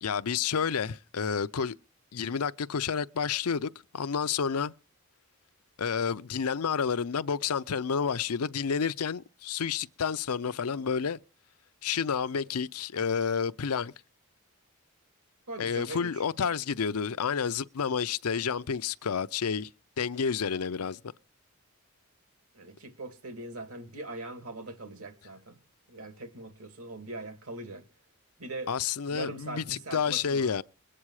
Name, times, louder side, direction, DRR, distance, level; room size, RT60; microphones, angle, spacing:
voice 1, 0.0-1.8 2.1-4.7 5.8-11.2 11.8-13.9 15.6-19.7 20.0-21.0 28.7-30.6, left 6 dB, 90° left, 0.6 m, -30 dB
voice 2, 15.5-16.2 22.5-25.6 25.9-27.8 28.4-28.8 29.1-30.5, right 2 dB, 75° right, 2.5 m, -41 dB
22.0 x 8.7 x 4.8 m
head